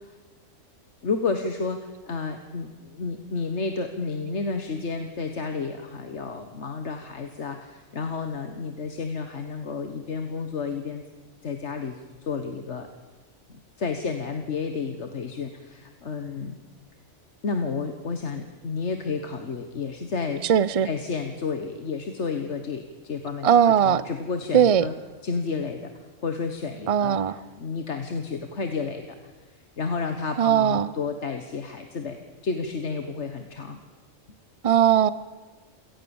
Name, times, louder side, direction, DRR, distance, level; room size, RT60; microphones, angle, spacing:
voice 1, 1.0-11.0 11.4-12.9 13.5-16.6 17.4-20.4 20.8-24.9 25.2-29.2 29.8-33.8, left 4 dB, 70° left, 6 dB, 1.7 m, -31 dB
voice 2, 20.4-20.9 23.4-24.0 24.5-24.9 26.9-27.4 30.4-30.9 34.6-35.1, right 9 dB, 35° right, 17 dB, 0.7 m, -19 dB
27.5 x 18.5 x 7.2 m, 1.3 s
omnidirectional pair, 1.2 m